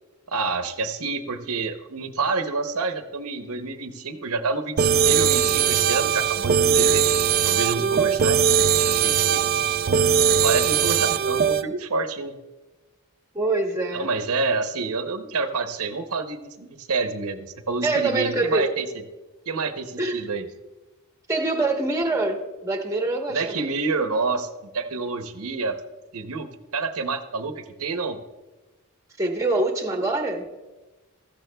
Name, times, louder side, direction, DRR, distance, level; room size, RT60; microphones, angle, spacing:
voice 1, 0.3-7.0 7.4-9.4 10.2-12.4 13.9-18.9 19.5-20.4 23.3-24.5 24.7-25.8 26.1-28.2, right 4 dB, 80° right, 7 dB, 0.8 m, -28 dB
sound 1, 4.8-11.6, right 8 dB, 45° right, 0.3 m, -20 dB
voice 2, 7.8-8.2 13.3-14.1 17.8-18.7 20.0-20.2 21.3-23.7 29.2-30.5, right 2 dB, 15° right, 2 dB, 1.0 m, -25 dB
15.5 x 13.5 x 2.2 m, 1.1 s
head